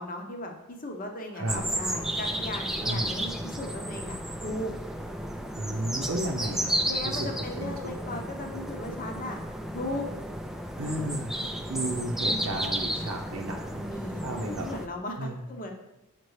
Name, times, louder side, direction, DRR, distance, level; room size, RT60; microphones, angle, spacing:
voice 1, 0.0-4.7 6.8-9.4 9.7-10.1 13.8-15.7, left 1 dB, 40° left, 3 dB, 0.8 m, -37 dB
sound 1, 1.5-14.9, right 1 dB, ahead, 0.3 m, -33 dB
voice 2, 2.8-3.1 5.6-6.7 7.0-7.3 7.5-7.9 10.8-13.9 14.2-14.7 15.2-15.4, right 1 dB, 65° right, -1 dB, 0.7 m, -33 dB
7.4 x 5.3 x 3.2 m, 0.92 s
head